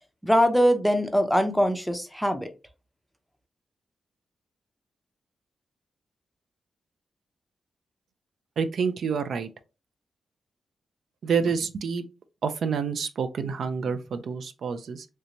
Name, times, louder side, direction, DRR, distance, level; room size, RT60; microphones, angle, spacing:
voice 1, 0.2-2.5, equal, ahead, 0.5 m, -22 dB
voice 2, 8.6-9.5 11.2-12.0 12.4-15.1, right 6 dB, 70° right, 0.4 m, -28 dB
3.2 x 2.6 x 2.9 m
wide cardioid pair, 125°, 0 cm